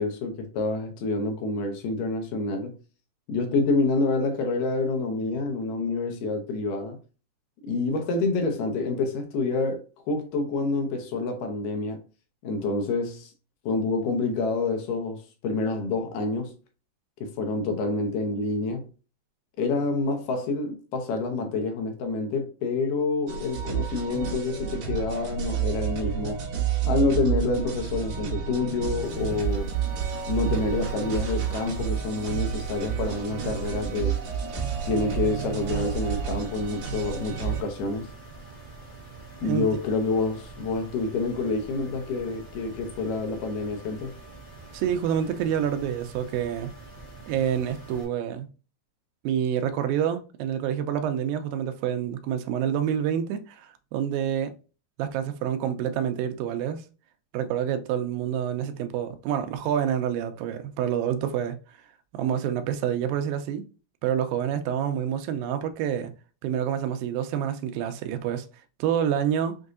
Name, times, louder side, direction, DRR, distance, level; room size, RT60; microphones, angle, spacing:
voice 1, 0.0-2.8 3.3-7.0 7.6-12.0 12.4-13.3 13.6-16.6 17.2-18.9 19.6-26.4 26.8-29.7 30.3-34.2 34.9-38.1 39.4-44.1, left 3 dB, 75° left, 2.4 m, -27 dB
sound 1, 23.3-37.6, right 8 dB, 60° right, 2.4 m, -30 dB
sound 2, 29.0-48.0, right 2 dB, 35° left, 1.1 m, -45 dB
voice 2, 44.7-46.7 47.3-48.5 49.2-54.6 55.0-56.8 57.3-61.6 62.1-63.6 64.0-66.1 66.4-68.5 68.8-69.6, right 9 dB, 85° right, 2.4 m, -27 dB
6.4 x 2.6 x 2.5 m
omnidirectional pair, 4.1 m